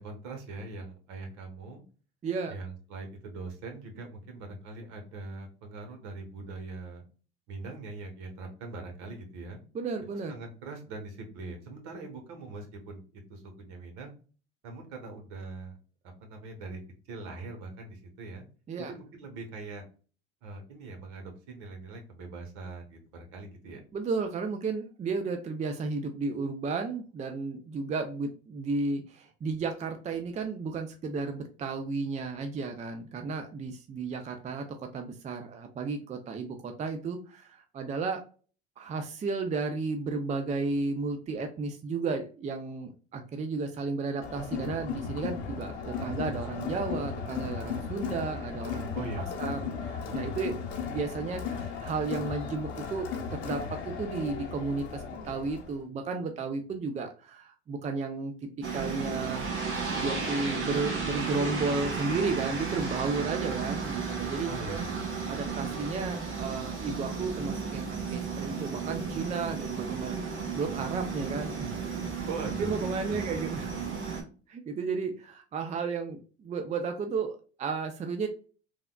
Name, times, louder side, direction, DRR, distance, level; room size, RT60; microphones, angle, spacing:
voice 1, 0.0-1.8 2.5-7.0 7.5-9.6 10.3-13.0 13.3-14.1 14.6-15.8 16.2-16.8 17.1-18.4 18.8-19.8 20.4-23.8 48.9-49.7 64.5-65.3 72.3-72.8 73.1-73.4, right 3 dB, 65° right, 3 dB, 1.2 m, -42 dB
voice 2, 2.2-2.6 9.7-10.4 18.7-18.9 23.9-38.2 38.8-49.0 49.4-58.3 58.7-64.8 65.3-72.3 72.6-73.7 74.0-74.2 74.5-78.3, right 4 dB, 20° right, 6 dB, 0.5 m, -33 dB
Crowd, 44.2-55.8, left 6 dB, 80° left, 0.9 m, -36 dB
sound 1, 58.6-74.2, right 5 dB, 35° right, 1.2 m, -34 dB
3.4 x 2.3 x 2.2 m, 0.38 s
hypercardioid pair, 80°, 33 cm